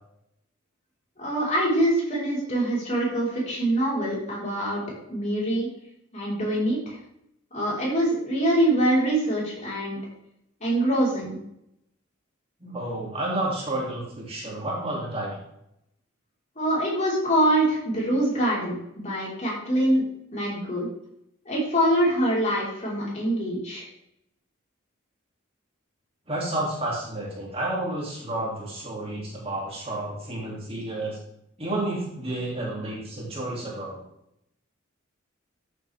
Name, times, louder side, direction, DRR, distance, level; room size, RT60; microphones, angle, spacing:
voice 1, 1.2-4.8 5.1-5.7 6.1-7.0 7.5-10.0 10.6-11.4 16.5-20.0 20.3-20.9 21.4-23.8, right 1 dB, 35° left, -6 dB, 4.8 m, -24 dB
voice 2, 12.6-15.4 26.3-31.2 31.6-34.0, right 1 dB, 30° right, -4 dB, 3.0 m, -30 dB
13.5 x 7.9 x 3.6 m, 0.79 s
head